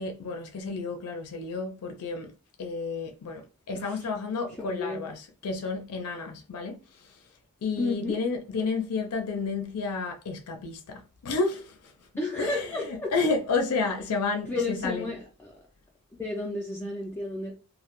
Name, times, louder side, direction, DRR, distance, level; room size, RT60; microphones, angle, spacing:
voice 1, 0.0-2.3 2.6-3.4 3.7-6.8 7.6-11.8 12.4-15.1, left 4 dB, 85° left, 0.4 m, -31 dB
voice 2, 3.7-4.1 4.6-5.0 7.8-8.2 12.2-13.1 14.4-15.6 16.2-17.5, left 2 dB, 10° left, 0.3 m, -32 dB
2.1 x 2.1 x 2.9 m
head